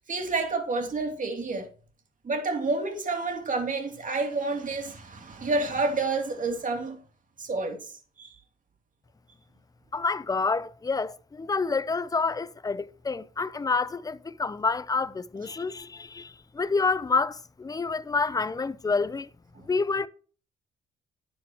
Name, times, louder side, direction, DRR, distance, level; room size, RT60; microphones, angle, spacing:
voice 1, 0.0-1.7 2.2-7.0 7.4-7.9 8.2-8.3 19.5-19.7, right 3 dB, 40° right, 2.9 m, -29 dB
voice 2, 9.9-19.3 19.7-20.1, left 4 dB, 20° left, 0.6 m, -28 dB
10.0 x 9.3 x 3.0 m
cardioid pair, 90°, 20 cm